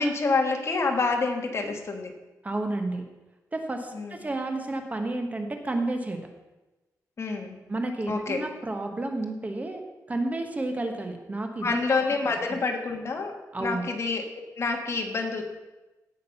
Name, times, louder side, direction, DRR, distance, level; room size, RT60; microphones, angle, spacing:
voice 1, 0.0-2.1 3.9-4.3 7.2-7.6 8.1-8.4 11.6-14.3 14.6-15.4, left 3 dB, 45° left, 3 dB, 1.8 m, -27 dB
voice 2, 2.4-3.0 3.5-6.2 7.7-11.7 13.5-13.8, right 2 dB, 25° right, 5 dB, 1.3 m, -31 dB
17.0 x 6.4 x 5.6 m, 1.1 s
wide cardioid pair, 130°, 6 cm